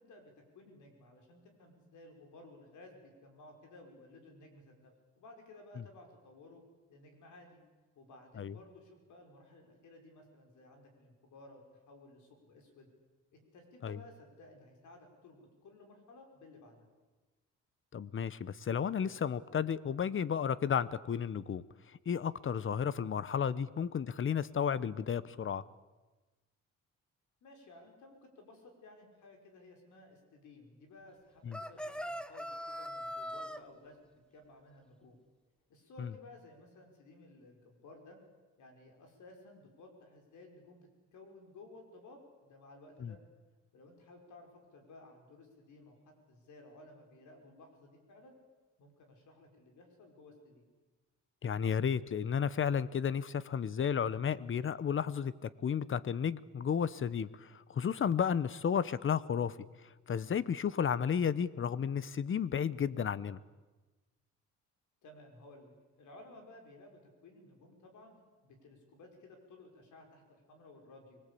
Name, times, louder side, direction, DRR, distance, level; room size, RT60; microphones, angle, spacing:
voice 1, 0.0-6.6 6.9-7.6 8.0-12.9 13.3-16.9 27.4-34.0 34.3-35.2 35.7-38.2 38.6-43.2 43.7-48.4 48.8-50.6 65.0-68.2 68.4-71.2, left 2 dB, 75° left, 3 dB, 5.8 m, -56 dB
voice 2, 17.9-21.6 22.1-25.6 31.5-31.6 36.0-36.1 43.0-43.1 51.4-59.7 60.1-63.4, left 7 dB, 40° left, 18 dB, 1.0 m, -33 dB
sound 1, 31.5-33.6, equal, 5° left, 1.2 m, -41 dB
25.0 x 19.5 x 8.6 m, 1.2 s
cardioid pair, 90°, 30 cm